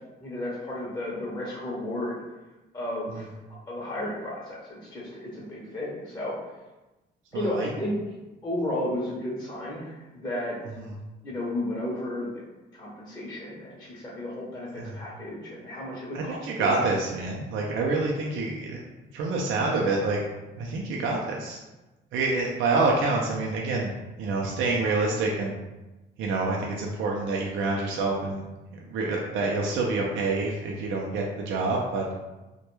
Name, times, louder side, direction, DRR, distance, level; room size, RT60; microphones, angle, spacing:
voice 1, 0.2-2.2 2.7-3.3 3.7-6.3 7.3-7.9 8.4-10.6 11.2-12.4 12.7-16.8, left 1 dB, 20° left, -6 dB, 0.6 m, -33 dB
voice 2, 7.3-7.7 10.8-10.9 14.7-14.9 16.1-18.8 19.1-20.2 20.6-21.6 22.1-23.9 24.2-25.5 26.2-28.5 28.7-32.1, right 3 dB, 75° right, -1 dB, 0.4 m, -27 dB
2.2 x 2.2 x 3.0 m, 1.1 s
cardioid pair, 90°, 20 cm